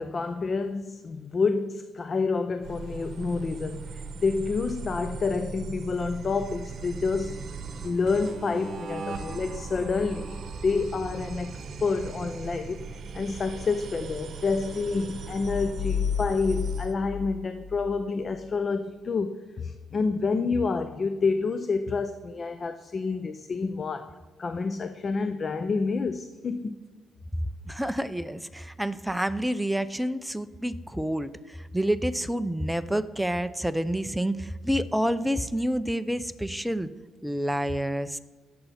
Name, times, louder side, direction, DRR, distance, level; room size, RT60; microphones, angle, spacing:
voice 1, 0.0-7.4 7.8-12.9 13.1-26.8, left 4 dB, 40° left, 0.5 m, -28 dB
sound 1, 2.6-16.9, right 5 dB, 60° right, 1.1 m, -39 dB
sound 2, 15.4-18.0, left 7 dB, 90° left, 0.7 m, -31 dB
voice 2, 27.7-36.9 37.2-38.2, equal, 5° right, 0.5 m, -28 dB
17.5 x 6.9 x 4.2 m
cardioid pair, 90°, 0 cm